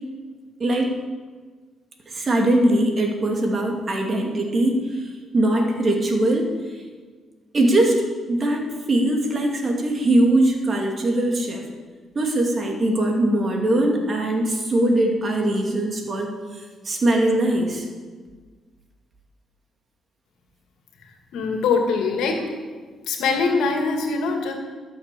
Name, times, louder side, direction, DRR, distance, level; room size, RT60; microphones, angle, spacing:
voice 1, 0.6-0.9 2.1-6.5 7.5-11.6 12.1-17.8, right 1 dB, 40° right, 1 dB, 2.6 m, -21 dB
voice 2, 21.3-22.5 23.1-24.5, left 4 dB, 85° left, 3 dB, 2.3 m, -22 dB
13.0 x 7.3 x 6.9 m, 1.5 s
cardioid pair, 90°, 0 cm